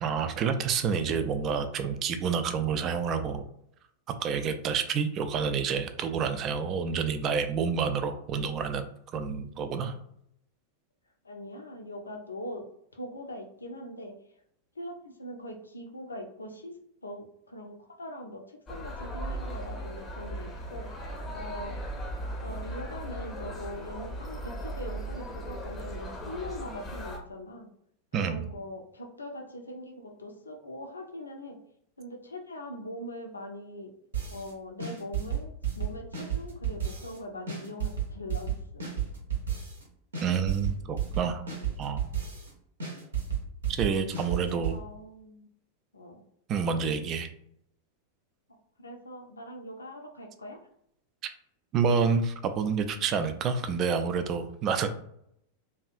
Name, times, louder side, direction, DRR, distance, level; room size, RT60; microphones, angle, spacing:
voice 1, 0.0-3.4 4.1-9.9 28.1-28.4 40.2-41.4 41.8-42.0 43.7-44.8 46.5-47.3 51.7-54.9, right 6 dB, 35° right, 8 dB, 0.3 m, -28 dB
voice 2, 11.2-12.6 12.9-14.1 14.8-16.7 17.0-21.0 21.3-21.8 22.4-27.7 28.2-31.6 32.0-33.9 34.3-38.8 41.0-41.1 44.4-45.5 45.9-46.2 48.5-50.6, left 1 dB, 75° left, 2 dB, 0.4 m, -42 dB
sound 1, 18.7-27.2, right 1 dB, 15° left, 0.6 m, -37 dB
sound 2, 34.1-34.5 34.8-37.2 37.5-39.8 40.1-42.5 42.8-44.8, right 8 dB, 70° right, 0.6 m, -32 dB
2.7 x 2.2 x 2.5 m, 0.72 s
figure-of-eight pair, 90°, 0 cm